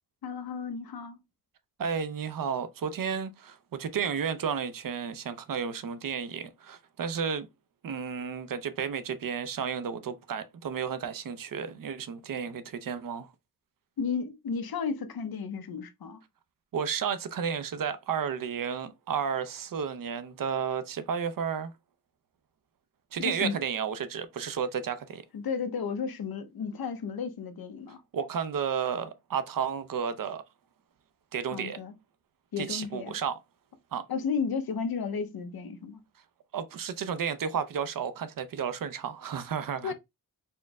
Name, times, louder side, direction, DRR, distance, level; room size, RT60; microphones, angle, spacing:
voice 1, 0.2-1.2 14.0-16.2 23.2-23.6 25.3-28.0 31.5-31.9 32.5-33.2 34.1-36.0 39.8-39.9, left 6 dB, 65° left, 0.7 m, -33 dB
voice 2, 1.8-7.5 7.8-13.3 16.7-21.7 23.1-25.2 28.1-30.4 31.3-31.8 32.6-33.4 33.9-34.0 36.5-39.9, right 7 dB, 60° right, 0.5 m, -32 dB
4.3 x 2.0 x 3.5 m
wide cardioid pair, 130°, 38 cm